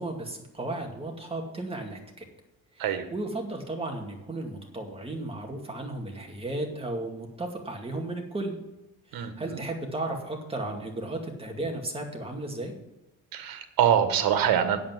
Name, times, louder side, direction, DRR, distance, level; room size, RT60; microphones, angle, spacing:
voice 1, 0.0-2.2 2.7-8.5 9.1-12.7, right 2 dB, 15° right, 2 dB, 2.2 m, -34 dB
voice 2, 13.3-14.8, right 9 dB, 85° right, 9 dB, 1.5 m, -24 dB
8.7 x 7.8 x 7.6 m, 0.92 s
cardioid pair, 130°, 34 cm